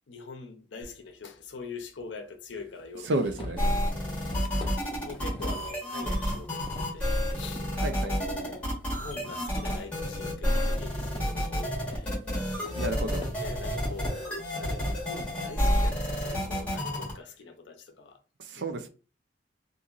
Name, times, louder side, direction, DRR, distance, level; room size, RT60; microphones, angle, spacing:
voice 1, 0.1-3.1 3.4-3.5 3.8-12.8 13.4-18.2 18.6-18.8, left 4 dB, 75° left, 0.6 m, -44 dB
sound 1, 0.8-0.9 2.0-2.1 2.6-7.7 8.2-9.4 9.8-16.0, left 1 dB, 30° left, 0.5 m, -43 dB
voice 2, 3.0-3.7 4.0-4.1 4.6-4.7 7.8-8.1 12.7-13.3 18.4-18.9, right 2 dB, 70° right, 0.5 m, -32 dB
sound 2, 3.6-17.1, equal, 5° left, 1.3 m, -30 dB
2.9 x 2.5 x 2.4 m
head